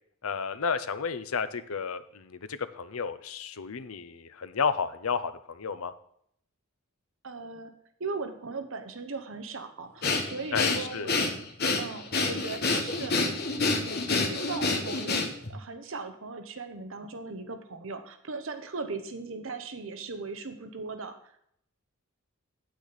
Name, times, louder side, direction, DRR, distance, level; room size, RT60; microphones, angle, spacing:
voice 1, 0.2-5.9 10.5-11.1, left 5 dB, 80° left, 12 dB, 0.7 m, -32 dB
voice 2, 7.2-7.7 8.0-11.3 11.8-13.1 13.5-15.2 15.5-21.1, right 4 dB, 65° right, 8 dB, 0.9 m, -38 dB
Breathing, 10.0-15.5, left 3 dB, 45° left, 1.5 m, -27 dB
9.0 x 8.5 x 4.1 m, 0.69 s
head